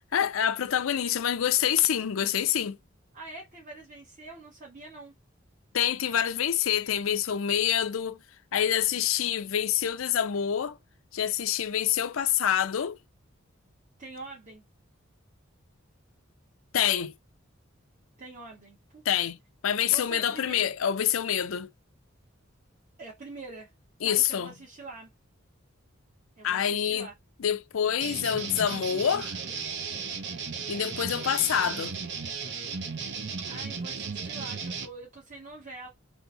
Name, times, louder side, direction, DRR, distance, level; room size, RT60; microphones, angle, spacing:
voice 1, 0.0-2.8 5.7-8.2 8.5-10.8 11.1-13.0 16.7-17.1 19.1-19.4 19.6-21.7 24.0-24.5 26.4-27.1 27.4-29.3 30.7-31.9, left 9 dB, 80° left, 0.5 m, -26 dB
voice 2, 3.1-5.1 14.0-14.6 18.2-19.3 19.9-20.7 23.0-23.7 24.0-25.1 26.4-27.1 33.4-35.9, right 3 dB, 40° right, 1.6 m, -45 dB
sound 1, 28.0-34.9, right 5 dB, 60° right, 0.8 m, -35 dB
3.6 x 3.4 x 3.9 m
head